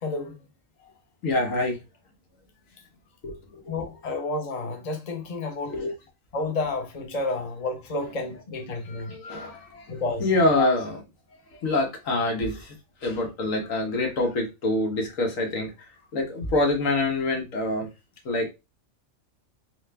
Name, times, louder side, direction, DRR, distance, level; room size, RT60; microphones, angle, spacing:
voice 1, 0.0-0.4 3.7-5.8 6.3-9.5 9.9-10.2 10.5-10.7, left 3 dB, 35° left, 0.9 m, -30 dB
voice 2, 1.2-1.8 3.2-3.7 5.6-5.9 8.9-9.9 10.2-11.0 11.5-12.8 13.0-17.9 18.2-18.5, left 2 dB, 85° left, 1.6 m, -26 dB
4.7 x 2.5 x 3.3 m
omnidirectional pair, 1.3 m